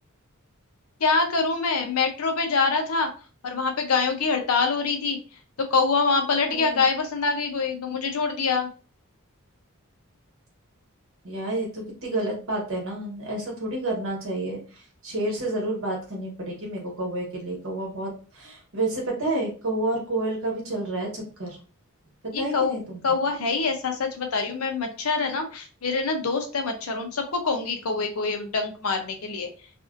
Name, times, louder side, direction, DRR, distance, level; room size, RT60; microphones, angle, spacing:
voice 1, 1.0-3.1 3.4-5.2 5.6-8.7 22.3-22.8 23.0-29.5, left 4 dB, 75° left, 5 dB, 0.7 m, -25 dB
voice 2, 6.5-6.8 11.2-21.6 22.4-23.2, right 2 dB, 65° right, -1 dB, 1.2 m, -30 dB
2.6 x 2.5 x 2.5 m, 0.37 s
head